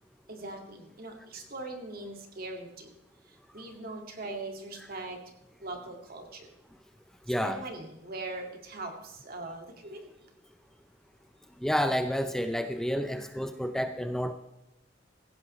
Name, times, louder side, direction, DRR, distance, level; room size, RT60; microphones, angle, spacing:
voice 1, 0.3-2.9 3.3-5.2 5.6-6.5 7.4-10.1 13.1-13.2, right 2 dB, 55° right, 3 dB, 2.1 m, -41 dB
voice 2, 7.3-7.6 11.6-14.3, equal, 5° left, 8 dB, 0.5 m, -29 dB
16.0 x 15.5 x 3.2 m, 0.88 s
head